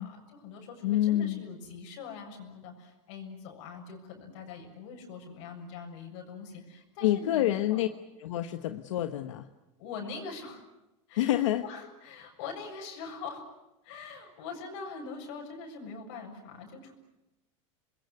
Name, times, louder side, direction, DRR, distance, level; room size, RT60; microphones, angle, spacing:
voice 1, 0.0-7.8 9.8-10.6 11.1-11.3 11.6-13.5 13.8-16.9, left 5 dB, 75° left, 2 dB, 7.1 m, -43 dB
voice 2, 0.8-1.4 7.0-7.9 8.2-9.5 11.1-11.6, left 13 dB, 90° left, 10 dB, 1.2 m, -27 dB
27.5 x 21.5 x 9.6 m, 0.95 s
supercardioid pair, 120°, 16 cm